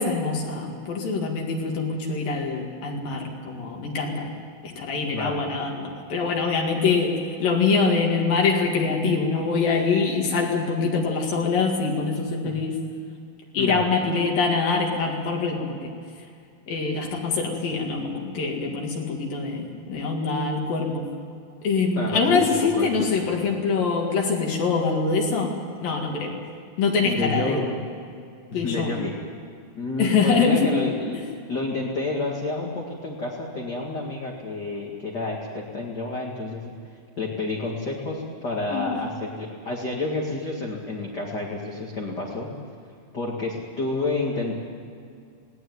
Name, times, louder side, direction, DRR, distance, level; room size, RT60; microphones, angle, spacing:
voice 1, 0.0-4.3 4.6-12.8 13.5-15.9 16.7-21.0 21.6-25.5 25.8-26.4 26.8-27.6 28.5-29.0 30.0-30.7 38.7-38.9, left 4 dB, 65° left, 0 dB, 3.7 m, -24 dB
voice 2, 5.1-5.4 12.4-12.5 13.5-13.8 22.0-23.2 27.0-27.7 28.5-29.1 29.8-31.2 31.5-36.7 37.2-42.5 43.1-44.5, left 2 dB, 35° left, -2 dB, 2.0 m, -29 dB
19.5 x 18.0 x 9.4 m, 2.3 s
omnidirectional pair, 4.5 m